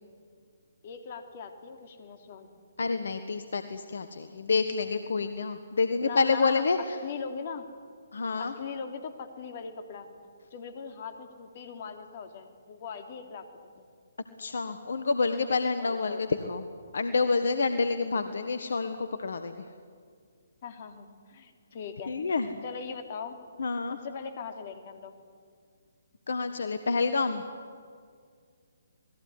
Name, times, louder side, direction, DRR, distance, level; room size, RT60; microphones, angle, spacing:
voice 1, 0.8-2.5 6.0-6.6 7.0-7.6 8.4-10.1 10.5-13.4 15.8-16.2 20.6-22.3 22.6-23.4 23.9-25.1, left 6 dB, 45° left, 7 dB, 3.0 m, -40 dB
voice 2, 2.8-7.0 8.1-8.5 14.4-16.7 16.9-19.6 22.1-22.6 23.6-24.0 26.3-27.4, left 4 dB, 65° left, 9 dB, 1.5 m, -28 dB
28.0 x 20.0 x 9.9 m, 2.1 s
figure-of-eight pair, 140°, 0 cm